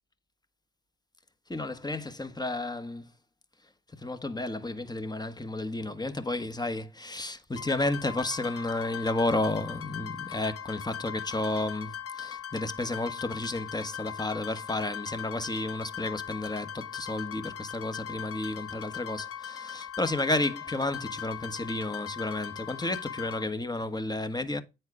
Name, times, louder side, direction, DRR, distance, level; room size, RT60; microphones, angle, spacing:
voice 1, 1.5-3.1 4.0-24.6, left 2 dB, 15° left, 1.4 m, -32 dB
sound 1, 7.6-23.4, left 9 dB, 45° left, 1.3 m, -40 dB
9.5 x 4.5 x 4.8 m
hypercardioid pair, 50°, 31 cm